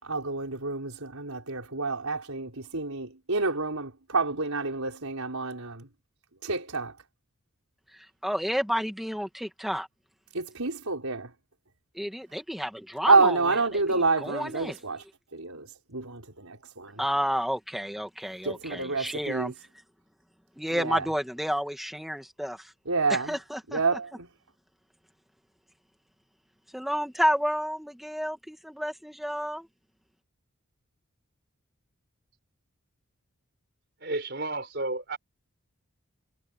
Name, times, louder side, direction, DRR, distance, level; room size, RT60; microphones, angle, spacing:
voice 1, 0.0-5.9 6.4-6.9 10.3-11.3 13.1-15.0 15.3-17.0 18.4-19.5 20.7-21.1 22.8-23.4 23.7-24.3, right 3 dB, 80° right, 4.8 m, -28 dB
voice 2, 7.9-9.9 12.0-13.4 14.2-14.8 17.0-19.5 20.6-22.7 23.1-23.8 26.7-29.7, equal, ahead, 2.0 m, -30 dB
voice 3, 34.0-35.2, right 2 dB, 50° right, 5.0 m, -32 dB
head